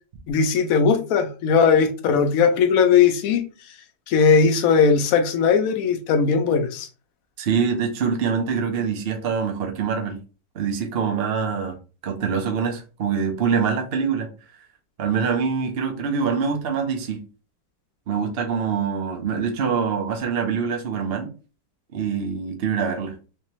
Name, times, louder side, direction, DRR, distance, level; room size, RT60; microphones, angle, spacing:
voice 1, 0.3-3.4 4.1-6.9, left 6 dB, 65° left, 0.9 m, -18 dB
voice 2, 7.4-10.2 10.5-11.8 12.0-14.3 15.0-17.2 18.1-21.3 21.9-23.1, right 6 dB, 55° right, 0.6 m, -24 dB
3.4 x 3.2 x 3.0 m
omnidirectional pair, 2.0 m